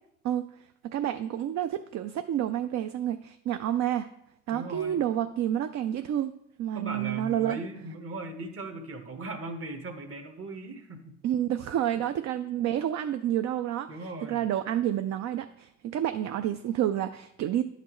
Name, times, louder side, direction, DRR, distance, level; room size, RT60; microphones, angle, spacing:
voice 1, 0.8-4.1 4.5-6.3 6.6-7.6 11.2-17.6, right 11 dB, 65° right, 9 dB, 0.4 m, -29 dB
voice 2, 4.5-5.0 6.7-11.2 13.9-14.5, right 2 dB, 50° right, 6 dB, 1.2 m, -38 dB
10.5 x 5.9 x 3.0 m, 0.81 s
cardioid pair, 90°, 30 cm